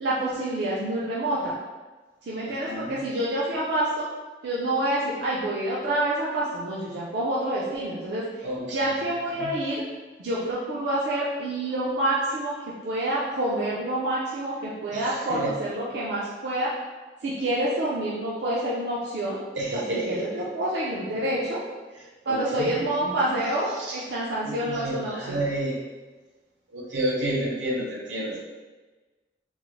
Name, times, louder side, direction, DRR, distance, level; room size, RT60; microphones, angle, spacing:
voice 1, 0.0-1.6 2.2-4.1 4.4-9.8 10.2-16.7 17.2-19.4 19.7-21.6 22.3-25.4, right 1 dB, 70° right, -6 dB, 0.5 m, -28 dB
voice 2, 2.4-2.9 8.4-8.9 9.3-9.5 14.9-15.5 19.5-20.5 22.2-23.4 23.8-24.0 24.4-25.8 26.7-28.4, right 1 dB, 90° right, -3 dB, 0.8 m, -30 dB
3.8 x 2.0 x 3.1 m, 1.3 s
head